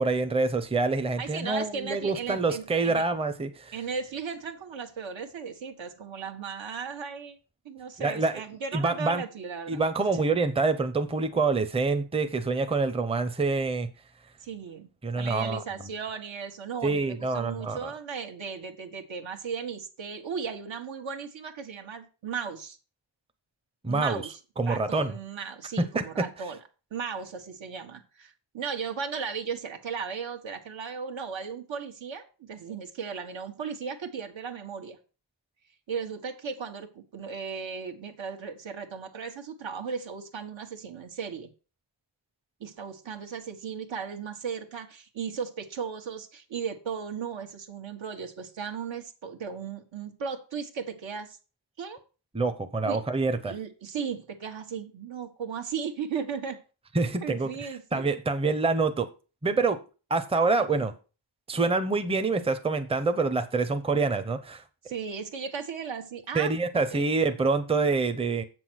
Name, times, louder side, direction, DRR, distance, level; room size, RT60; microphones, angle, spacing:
voice 1, 0.0-3.7 8.0-8.4 8.7-9.2 9.7-13.9 15.0-15.6 16.8-17.9 23.8-24.2 24.6-25.1 25.8-26.3 52.3-53.5 56.9-57.5 57.9-59.1 59.4-59.8 60.1-60.9 61.5-64.6 66.3-68.4, right 3 dB, 10° right, 0.7 m, -26 dB
voice 2, 1.2-3.0 3.7-7.4 7.6-9.8 10.1-10.2 14.4-14.9 15.1-22.8 23.9-24.4 24.7-26.6 26.9-35.0 35.9-41.5 42.6-51.4 51.8-52.0 52.8-53.0 53.5-56.6 57.2-58.1 60.6-60.8 64.8-67.0, right 6 dB, 70° right, 1.5 m, -36 dB
7.8 x 6.1 x 6.3 m
wide cardioid pair, 145°, 48 cm